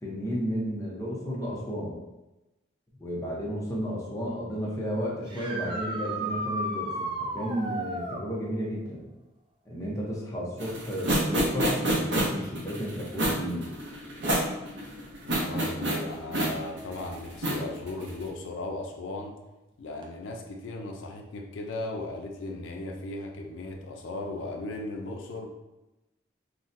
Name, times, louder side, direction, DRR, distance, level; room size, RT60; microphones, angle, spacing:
voice 1, 0.0-2.0 3.0-9.0 9.7-13.7, equal, 15° left, -4 dB, 0.6 m, -33 dB
Horror Scream Echo, 5.3-8.2 11.6-11.7 13.7-13.8 20.0-20.1, right 1 dB, 25° right, 0.3 m, -33 dB
sound 1, 10.6-18.2, right 1 dB, 70° right, 0.6 m, -28 dB
voice 2, 15.2-19.3 19.8-25.5, left 2 dB, 75° left, 2 dB, 0.4 m, -37 dB
3.9 x 2.1 x 2.5 m, 1.0 s
head